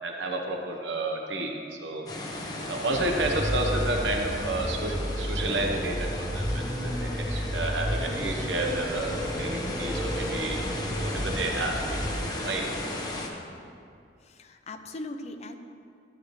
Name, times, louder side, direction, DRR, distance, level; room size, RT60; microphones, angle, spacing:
voice 1, 0.0-1.5 1.8-2.1 2.7-12.7, right 2 dB, 80° right, 2 dB, 1.0 m, -31 dB
sound 1, 2.1-13.3, left 1 dB, 20° left, 1.1 m, -36 dB
sound 2, 2.9-12.1, equal, 5° right, 1.2 m, -32 dB
voice 2, 14.2-15.6, left 2 dB, 40° left, 6 dB, 0.6 m, -39 dB
13.0 x 8.9 x 3.2 m, 2.4 s
head